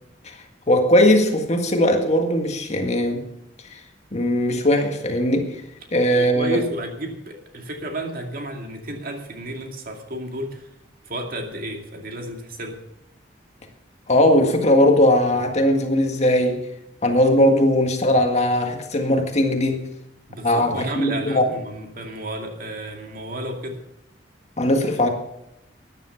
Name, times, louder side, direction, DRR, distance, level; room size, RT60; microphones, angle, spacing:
voice 1, 0.7-3.2 4.1-5.6 5.9-6.6 14.1-16.6 17.0-19.9 20.4-21.5 24.6-25.1, left 1 dB, 40° left, 4 dB, 1.8 m, -19 dB
voice 2, 6.1-10.7 11.0-12.8 20.3-23.8, right 1 dB, 50° right, 3 dB, 2.4 m, -32 dB
13.5 x 10.0 x 5.8 m, 0.85 s
head